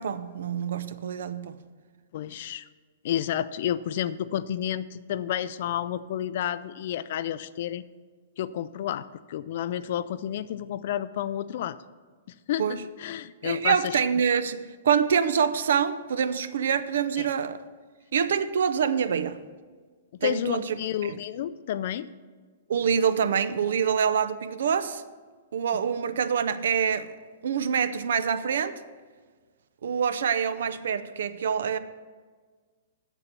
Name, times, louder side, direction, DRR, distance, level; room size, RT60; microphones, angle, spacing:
voice 1, 0.0-1.6 12.6-12.8 13.4-17.6 18.1-19.4 20.2-20.8 21.1-21.2 22.7-25.0 25.5-27.1 27.4-28.8 29.8-31.8, right 7 dB, 70° right, 0.6 m, -26 dB
voice 2, 2.1-2.7 3.0-7.8 8.4-11.8 12.3-14.0 17.2-17.3 20.1-22.1 25.7-25.8, left 10 dB, 50° left, 0.4 m, -31 dB
7.2 x 7.1 x 6.7 m
hypercardioid pair, 165°, 0 cm